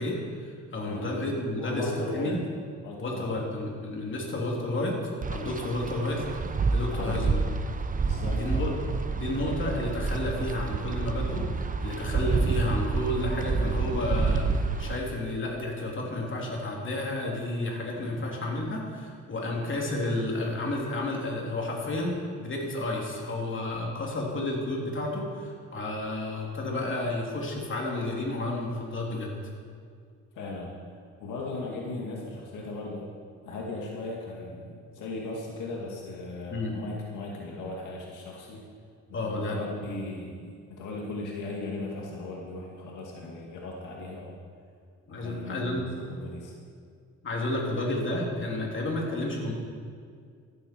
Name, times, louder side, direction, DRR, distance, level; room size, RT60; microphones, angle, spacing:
voice 1, 0.0-2.4 3.0-5.0 5.3-6.2 6.7-7.4 8.3-29.4 36.5-36.7 39.1-39.6 45.1-45.8 47.2-49.5, left 1 dB, 40° left, -1 dB, 3.2 m, -31 dB
voice 2, 1.6-2.3 2.8-3.3 4.0-4.2 6.9-7.4 8.0-8.7 18.0-18.3 30.3-33.1 33.4-38.6 39.1-44.3 45.1-46.5, left 2 dB, 85° left, -2 dB, 2.2 m, -38 dB
Wind, 5.2-15.0, right 4 dB, 25° right, 0.8 m, -29 dB
14.0 x 13.0 x 4.6 m, 2.2 s
cardioid pair, 90°, 30 cm